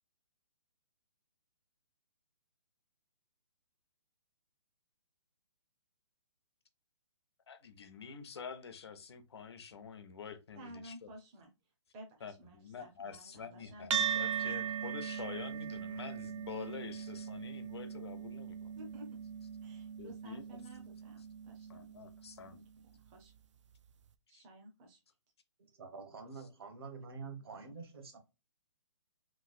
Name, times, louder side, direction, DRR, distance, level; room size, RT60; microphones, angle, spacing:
voice 1, 7.5-11.1 12.2-18.7 20.0-20.6 21.7-22.6 24.3-24.5, left 6 dB, 55° left, 0.6 m, -47 dB
voice 2, 10.6-11.5 11.9-14.7 18.7-19.2 19.6-22.0 22.5-23.3 24.3-25.0 27.5-27.7, right 1 dB, 10° right, 0.5 m, -54 dB
sound 1, 13.9-22.6, right 8 dB, 70° right, 0.4 m, -39 dB
voice 3, 25.8-28.2, right 4 dB, 50° right, 1.0 m, -47 dB
3.1 x 3.0 x 2.4 m
hypercardioid pair, 170°, 16 cm